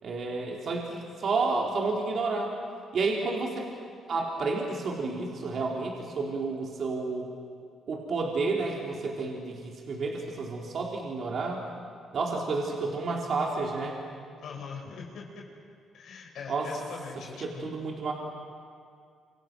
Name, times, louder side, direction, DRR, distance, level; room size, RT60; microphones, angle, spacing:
voice 1, 0.0-2.5 2.9-3.7 4.1-7.3 7.9-11.6 12.1-14.0 16.5-16.7 17.4-18.1, right 3 dB, 55° right, -2 dB, 3.9 m, -30 dB
voice 2, 14.4-15.4 15.9-17.7, left 5 dB, 70° left, 0 dB, 5.0 m, -42 dB
28.5 x 27.0 x 6.3 m, 2.2 s
cardioid pair, 90°, 0 cm